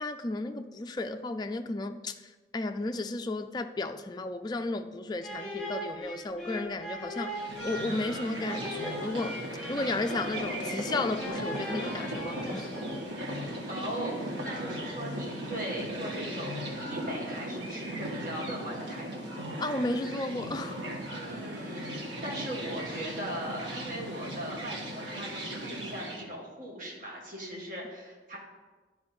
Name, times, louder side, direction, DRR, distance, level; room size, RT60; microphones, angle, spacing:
voice 1, 0.0-2.1 2.5-7.3 7.6-9.4 9.7-12.7 19.6-20.8, left 2 dB, 25° left, 0.3 m, -33 dB
sound 1, 5.2-13.3, equal, 5° left, 2.3 m, -40 dB
sound 2, 7.3-26.2, right 1 dB, 85° right, 1.3 m, -37 dB
voice 2, 13.7-19.2 21.1-28.4, equal, 45° right, 1.8 m, -39 dB
11.0 x 4.4 x 4.2 m
head